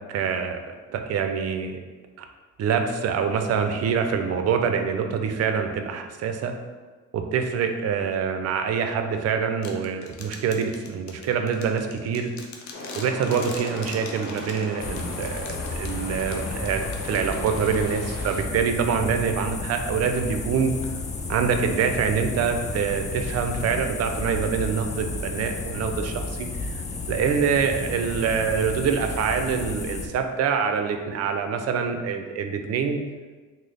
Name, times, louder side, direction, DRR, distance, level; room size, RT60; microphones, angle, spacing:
voice 1, 0.1-1.8 2.2-2.3 2.6-6.5 7.1-12.3 13.0-20.7 21.3-26.7 27.1-33.0, right 6 dB, 55° right, 6 dB, 0.4 m, -25 dB
sound 1, 9.6-18.1, left 4 dB, 70° left, 0.6 m, -43 dB
sound 2, 12.7-18.4, left 2 dB, 90° left, 0.9 m, -38 dB
sound 3, 14.8-30.1, left 3 dB, 25° left, 0.3 m, -32 dB
3.2 x 2.0 x 3.8 m, 1.4 s
cardioid pair, 90°, 30 cm